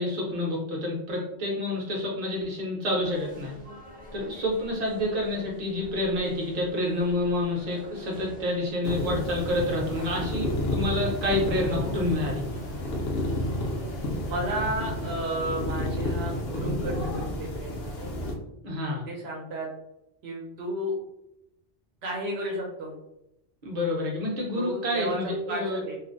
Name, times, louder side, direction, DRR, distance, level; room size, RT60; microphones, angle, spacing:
voice 1, 0.0-3.5 4.1-12.5 18.6-19.0 23.6-25.8, left 1 dB, 40° right, -3 dB, 0.7 m, -28 dB
sound 1, 2.8-16.4, equal, 10° right, 0.4 m, -46 dB
sound 2, 8.9-18.3, left 1 dB, 70° left, 0.8 m, -31 dB
voice 2, 14.3-18.3 19.1-19.7 20.2-20.9 22.0-22.9 24.5-26.0, right 1 dB, 75° right, -1 dB, 0.8 m, -33 dB
2.4 x 2.0 x 2.5 m, 0.85 s
omnidirectional pair, 1.1 m